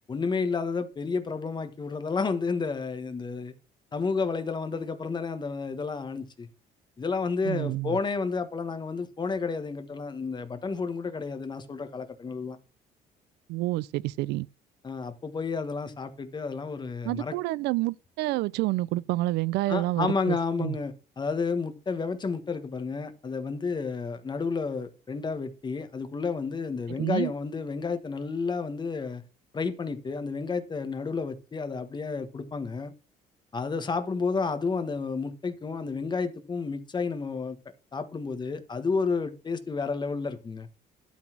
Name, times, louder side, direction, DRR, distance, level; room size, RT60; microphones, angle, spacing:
voice 1, 0.1-3.5 3.9-6.5 7.0-12.6 14.8-17.3 19.7-29.2 29.5-32.9 33.5-37.6 37.9-40.7, left 4 dB, 25° left, 1.3 m, -31 dB
voice 2, 7.4-8.0 13.5-14.5 17.1-20.8 27.0-27.3, right 18 dB, 85° right, 0.4 m, -28 dB
12.0 x 4.0 x 6.0 m
cardioid pair, 110°, 17 cm